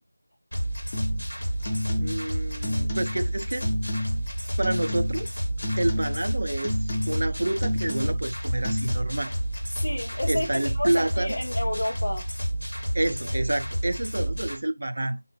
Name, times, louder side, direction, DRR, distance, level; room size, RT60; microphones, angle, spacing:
sound 1, 0.5-14.6, right 1 dB, 90° left, 1.1 m, -30 dB
sound 2, 0.9-1.3 1.6-2.3 2.6-3.3 3.6-4.3 4.6-5.3 5.6-6.3 6.6-7.3 7.6-8.3 8.6-8.9, left 1 dB, 25° left, 0.3 m, -30 dB
voice 1, 2.0-3.7 4.6-5.3 5.8-6.8 7.1-9.3 10.3-11.4 12.9-15.2, right 1 dB, 55° right, 0.3 m, -28 dB
voice 2, 9.7-12.3, left 1 dB, 60° left, 0.6 m, -30 dB
2.1 x 2.1 x 3.1 m
figure-of-eight pair, 175°, 0 cm